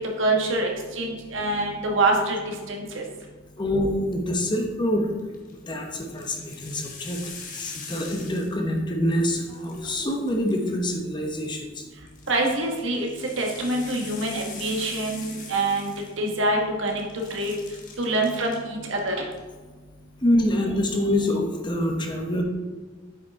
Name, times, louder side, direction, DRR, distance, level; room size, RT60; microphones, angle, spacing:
voice 1, 0.2-3.0 12.3-15.9 16.2-17.0 17.3-17.5 18.0-19.2, right 2 dB, 80° right, 0 dB, 1.5 m, -25 dB
voice 2, 3.6-5.1 5.5-7.2 7.5-11.8 20.2-22.4, left 1 dB, 25° left, 2 dB, 0.9 m, -25 dB
sound 1, 5.2-5.5 6.0-8.8 9.1-10.9 12.1-16.6 16.9-18.6 18.9-19.4, left 5 dB, 45° left, 1.2 m, -43 dB
8.5 x 5.8 x 3.6 m, 1.3 s
head